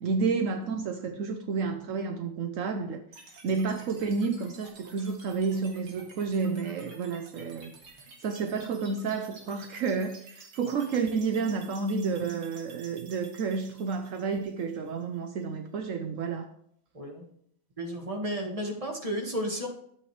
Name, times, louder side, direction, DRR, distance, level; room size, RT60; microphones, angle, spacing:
voice 1, 0.0-7.7 8.2-16.5, right 5 dB, 70° right, 0.7 m, -30 dB
sound 1, 3.1-15.1, right 3 dB, 90° right, 2.8 m, -52 dB
voice 2, 16.9-17.3 17.8-19.7, equal, 20° right, 1.6 m, -33 dB
11.0 x 8.6 x 3.3 m
omnidirectional pair, 2.2 m